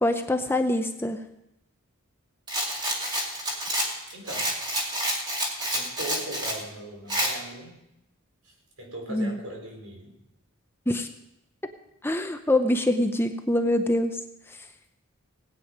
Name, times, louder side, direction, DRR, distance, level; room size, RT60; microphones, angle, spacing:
voice 1, 0.0-1.2 9.1-9.4 10.9-11.1 12.0-14.1, left 1 dB, 10° left, 7 dB, 0.6 m, -24 dB
Rattle, 2.5-6.6 7.1-7.3, equal, 20° right, 2.2 m, -28 dB
voice 2, 4.1-4.5 5.7-7.8 8.4-10.1, right 1 dB, 80° right, 0 dB, 4.3 m, -39 dB
19.0 x 9.1 x 5.2 m, 0.88 s
head